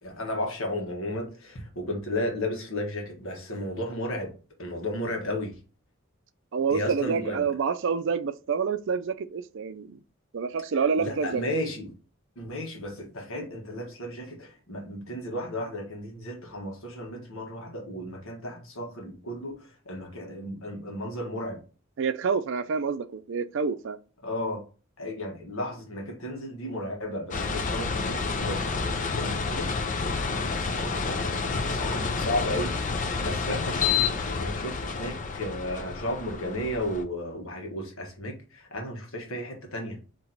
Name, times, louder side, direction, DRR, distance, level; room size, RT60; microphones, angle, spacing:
voice 1, 0.0-4.3 4.6-5.6 6.7-7.5 11.0-11.9 12.3-21.6 24.2-24.6 25.0-29.7 30.4-40.0, left 1 dB, 85° left, 1.4 m, -34 dB
voice 2, 6.5-10.0 10.3-11.4 22.0-24.0, right 5 dB, 65° right, 0.4 m, -28 dB
sound 1, 27.3-37.0, left 4 dB, 40° left, 0.5 m, -29 dB
4.4 x 3.0 x 3.9 m
head